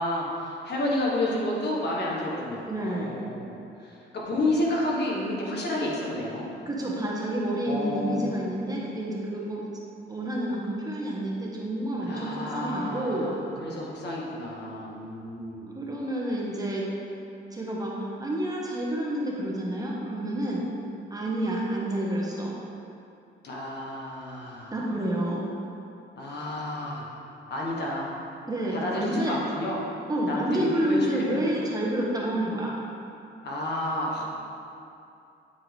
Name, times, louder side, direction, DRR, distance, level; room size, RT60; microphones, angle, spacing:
voice 1, 0.0-6.5 7.6-8.3 12.0-15.7 23.4-24.7 26.2-27.1 27.5-28.1 28.7-29.8 30.2-31.4 33.4-34.2, left 1 dB, 60° left, -4 dB, 1.5 m, -30 dB
voice 2, 2.7-3.2 6.6-9.6 10.1-13.3 15.7-16.8 17.5-20.7 21.1-22.6 24.7-25.5 28.5-29.3 30.1-32.8, right 1 dB, 20° right, -4 dB, 1.2 m, -29 dB
8.8 x 4.6 x 3.4 m, 2.7 s
cardioid pair, 90°, 20 cm